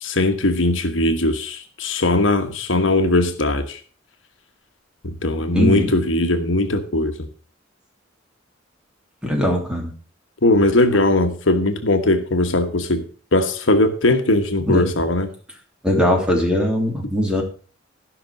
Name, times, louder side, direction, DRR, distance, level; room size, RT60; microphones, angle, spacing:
voice 1, 0.0-3.8 5.0-7.2 10.4-15.3, left 2 dB, 70° left, 7 dB, 1.3 m, -19 dB
voice 2, 5.5-5.9 9.2-9.9 14.7-14.9 15.8-17.4, left 1 dB, 5° right, 0 dB, 3.0 m, -20 dB
13.5 x 6.0 x 6.4 m, 0.40 s
head